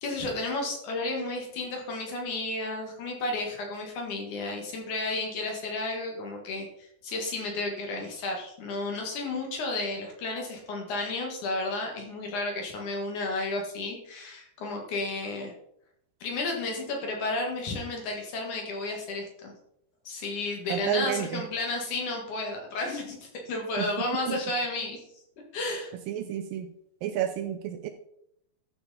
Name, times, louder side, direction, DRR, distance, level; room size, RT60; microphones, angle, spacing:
voice 1, 0.0-15.5 16.2-19.5 20.0-25.0 25.5-25.9, left 2 dB, 60° left, 1 dB, 2.8 m, -32 dB
voice 2, 20.7-21.4 23.8-23.9 24.3-24.4 26.1-26.7 27.0-27.9, right 9 dB, 80° right, 8 dB, 2.1 m, -30 dB
13.0 x 6.0 x 4.1 m, 0.73 s
omnidirectional pair, 4.4 m